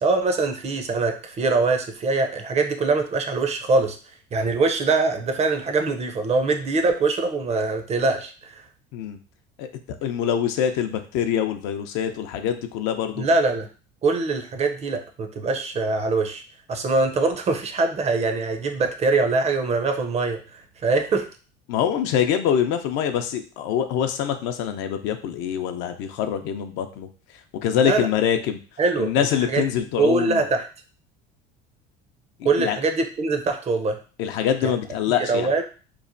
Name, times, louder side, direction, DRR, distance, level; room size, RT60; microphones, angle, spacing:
voice 1, 0.0-4.0 4.3-8.6 13.2-13.7 14.0-16.4 16.7-21.3 27.8-28.1 28.8-29.6 30.0-30.7 32.4-34.0 34.6-34.7 35.3-35.6, right 3 dB, 30° right, 5 dB, 0.5 m, -23 dB
voice 2, 10.0-13.2 21.7-27.1 27.6-28.6 29.0-30.4 32.4-32.8 34.2-35.5, left 9 dB, 70° left, 7 dB, 0.5 m, -24 dB
3.0 x 2.1 x 2.5 m, 0.37 s
supercardioid pair, 95°, 21 cm